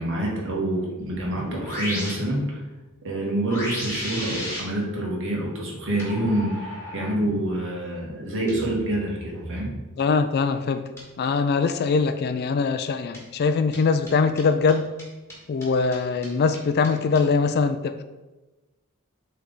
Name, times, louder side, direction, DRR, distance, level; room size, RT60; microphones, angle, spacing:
voice 1, 0.0-2.6 3.0-9.7, right 1 dB, 60° right, -3 dB, 1.6 m, -27 dB
sound 1, 1.0-2.1 3.5-4.6 6.0-7.1 8.5-9.6 11.0-11.1 13.1-13.2 13.7-13.8 14.1-14.2 14.4-14.5 14.7-14.8 15.0-15.1 15.3-15.4 15.6-15.7 15.9-16.0 16.2-16.3 16.5-16.6 16.8-16.9 17.2-17.3, equal, 10° left, 1.7 m, -34 dB
voice 2, 10.0-10.9 11.2-14.9 15.5-18.0, left 4 dB, 45° left, 10 dB, 0.3 m, -22 dB
7.3 x 3.4 x 4.0 m, 1.1 s
head